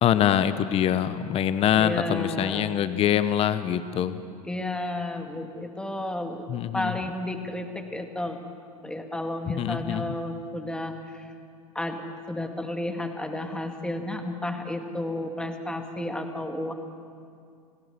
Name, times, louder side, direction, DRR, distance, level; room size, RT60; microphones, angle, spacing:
voice 1, 0.0-4.2 6.5-6.9 9.5-10.0, left 10 dB, 30° left, 13 dB, 1.0 m, -24 dB
voice 2, 1.8-2.7 4.4-6.5 6.7-8.4 8.8-11.3 11.7-16.7, left 1 dB, 5° left, 5 dB, 2.1 m, -32 dB
30.0 x 16.5 x 7.0 m, 2.3 s
hypercardioid pair, 100°, 19 cm